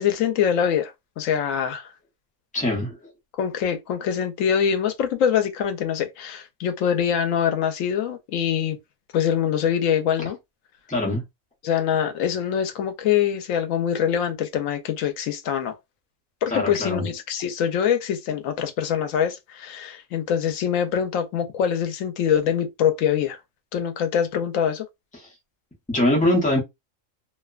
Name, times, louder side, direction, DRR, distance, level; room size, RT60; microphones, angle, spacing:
voice 1, 0.0-1.9 3.4-8.8 9.1-10.4 11.6-15.7 16.4-23.4 23.7-24.9, left 8 dB, 90° left, 1.0 m, -24 dB
voice 2, 2.5-2.9 10.9-11.2 16.5-17.1 25.9-26.6, left 1 dB, 5° left, 0.7 m, -22 dB
2.8 x 2.1 x 2.3 m
omnidirectional pair, 1.3 m